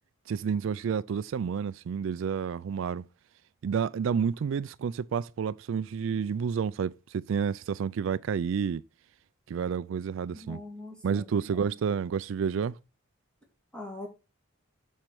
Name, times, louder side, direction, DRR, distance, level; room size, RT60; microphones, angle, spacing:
voice 1, 0.3-3.0 3.6-8.8 9.5-10.6 11.0-12.8, right 6 dB, 65° right, 0.3 m, -30 dB
voice 2, 10.3-11.3 11.6-11.7 13.7-14.1, left 2 dB, 5° left, 2.8 m, -42 dB
7.4 x 6.4 x 4.8 m
head